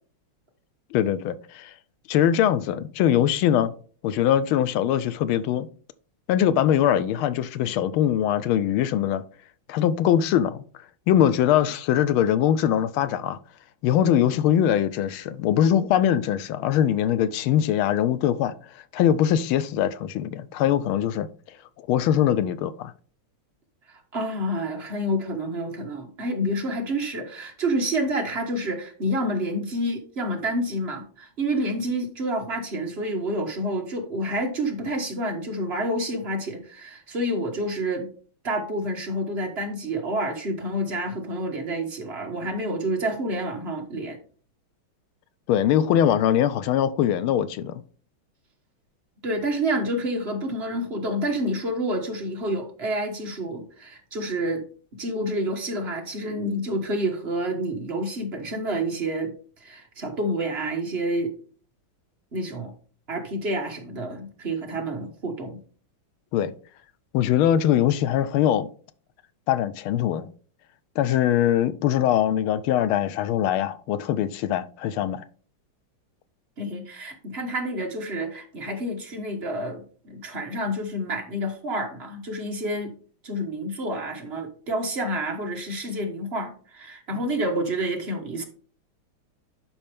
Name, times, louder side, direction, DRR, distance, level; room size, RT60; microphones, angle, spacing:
voice 1, 0.9-1.7 2.1-3.7 4.0-5.7 6.3-9.2 9.7-10.6 11.1-13.4 13.8-18.5 18.9-21.3 21.9-22.9 45.5-47.8 66.3-66.5 67.1-68.7 69.5-70.3 71.0-75.2, left 10 dB, 85° left, 1.4 m, -22 dB
voice 2, 24.1-38.1 38.4-44.2 49.2-54.6 54.9-59.3 59.6-61.3 62.3-62.7 63.1-65.6 76.6-82.9 83.2-88.4, right 1 dB, 35° right, 1.3 m, -28 dB
11.0 x 4.4 x 3.4 m
omnidirectional pair, 2.3 m